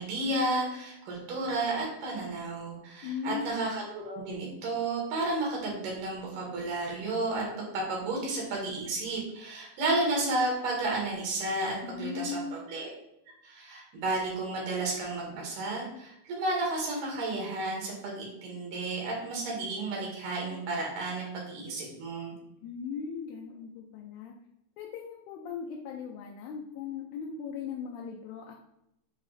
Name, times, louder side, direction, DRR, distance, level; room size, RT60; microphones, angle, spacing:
voice 1, 0.0-7.5 7.7-12.9 13.4-22.4, right 2 dB, 85° right, -2 dB, 3.6 m, -32 dB
voice 2, 3.0-3.5 11.8-12.6 22.6-24.3 24.8-28.5, left 6 dB, 75° left, 0 dB, 2.0 m, -38 dB
8.9 x 3.0 x 4.1 m, 0.84 s
omnidirectional pair, 3.7 m